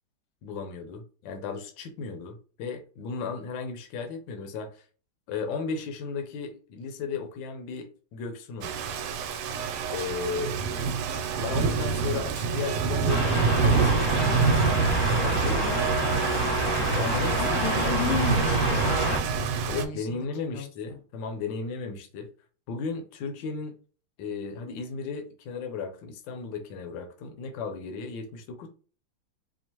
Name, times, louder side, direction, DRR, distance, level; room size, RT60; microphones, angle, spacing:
voice 1, 0.4-4.8 5.3-8.7 9.9-10.6 11.1-14.5 15.2-15.6 16.9-18.3 19.7-22.3 22.7-23.7 24.2-28.7, left 5 dB, 70° left, 5 dB, 1.4 m, -35 dB
Rain, 8.6-19.9, right 5 dB, 85° right, 1.5 m, -27 dB
sound 1, 13.1-19.2, right 1 dB, 20° left, 0.6 m, -27 dB
voice 2, 15.6-16.2 17.4-20.3 20.5-21.0, left 8 dB, 90° left, 5 dB, 1.6 m, -35 dB
4.4 x 2.6 x 2.9 m, 0.38 s
omnidirectional pair, 2.3 m